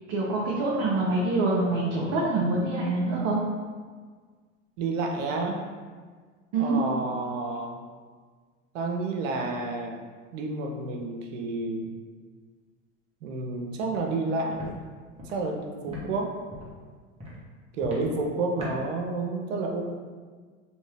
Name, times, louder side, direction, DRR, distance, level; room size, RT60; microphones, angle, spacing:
voice 1, 0.1-3.4 6.5-6.8, right 2 dB, 45° right, -5 dB, 0.7 m, -25 dB
voice 2, 4.8-5.6 6.5-7.8 8.7-10.0 10.3-11.9 13.2-14.7 15.3-16.3 17.7-19.8, right 3 dB, 85° right, 2 dB, 0.6 m, -30 dB
Walk footsteps, 13.9-14.0 14.5-14.7 15.2-15.3 15.9-16.0 16.5-16.7 17.2-17.3 17.8-18.0 18.6-18.7, left 2 dB, 15° right, 0.9 m, -39 dB
2.7 x 2.7 x 3.3 m, 1.5 s
hypercardioid pair, 95°, 38 cm